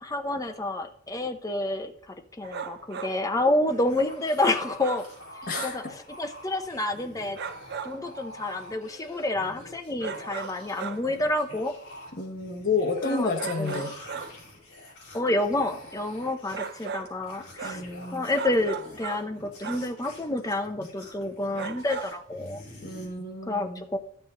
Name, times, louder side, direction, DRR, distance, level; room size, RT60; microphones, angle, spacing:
voice 1, 0.0-5.1 5.6-5.8 6.2-7.4 7.8-11.7 13.0-13.3 13.6-13.9 15.1-17.8 18.1-22.6 23.5-24.0, left 2 dB, 15° left, 5 dB, 0.8 m, -29 dB
sound 1, 2.4-3.2 4.4-5.2 5.5-5.9 7.4-8.1 10.0-11.1 13.4-14.5 16.5-17.2 17.6-17.9 18.3-19.4 19.6-19.9 21.6-22.2, right 6 dB, 50° right, 0.5 m, -37 dB
sound 2, 3.7-23.1, left 1 dB, 60° left, 4.9 m, -47 dB
voice 2, 5.4-5.9 12.2-13.9 17.6-18.3 22.8-23.8, left 4 dB, 40° left, 1 dB, 1.3 m, -30 dB
12.0 x 7.0 x 3.8 m, 0.66 s
head